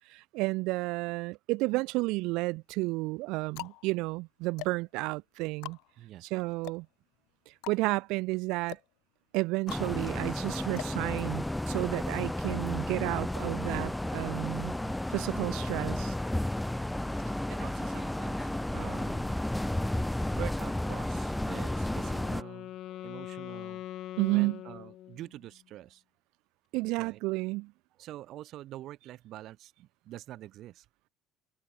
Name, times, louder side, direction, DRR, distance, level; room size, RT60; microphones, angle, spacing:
voice 1, 0.1-5.8 6.2-6.9 7.5-8.8 9.3-14.7 15.1-16.1 24.2-24.6 26.7-27.7, right 23 dB, 80° right, 1.2 m, -31 dB
sound 1, 1.6-2.3 3.0-11.8, left 23 dB, 85° left, 5.0 m, -47 dB
voice 2, 6.0-6.3 17.2-19.6 19.9-23.8 24.3-26.0 27.0-27.2 28.0-30.9, right 14 dB, 60° right, 5.8 m, -46 dB
sound 2, 9.7-22.4, left 1 dB, 5° left, 0.9 m, -32 dB
Wind instrument woodwind instrument, 21.5-25.5, left 13 dB, 55° left, 4.5 m, -43 dB
cardioid pair, 135°, 0 cm